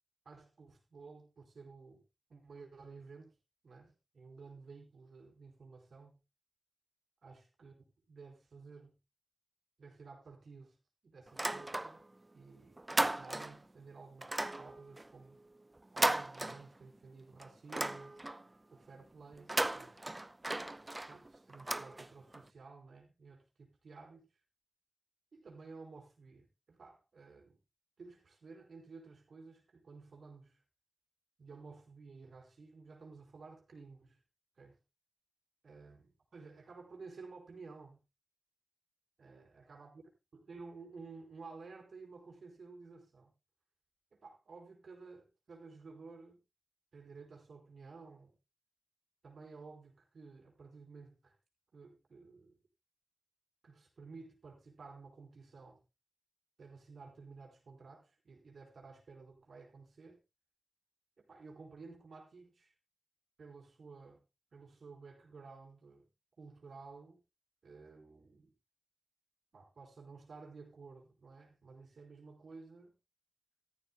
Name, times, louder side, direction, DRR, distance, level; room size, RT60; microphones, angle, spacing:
voice 1, 0.2-2.0 2.3-3.3 3.6-6.2 7.2-7.7 8.1-8.9 9.8-10.8 11.0-12.0 12.3-15.4 15.9-18.2 18.7-20.0 21.1-24.3 25.3-27.6 28.0-30.6 31.4-34.2 34.6-34.8 35.6-36.1 36.3-38.0 39.2-39.9 40.3-43.3 44.1-46.4 46.9-48.3 49.2-51.4 51.7-52.6 53.6-55.8 56.6-60.2 61.2-62.7 63.4-64.2 64.5-66.0 66.4-67.2 67.6-68.5 69.5-73.0, right 4 dB, 90° right, 4.5 m, -53 dB
sound 1, 11.3-12.2 12.5-13.7 14.2-17.0 17.4-18.5 19.3-22.4, right 2 dB, 30° right, 0.7 m, -37 dB
15.0 x 13.5 x 2.2 m
cardioid pair, 55°, 0 cm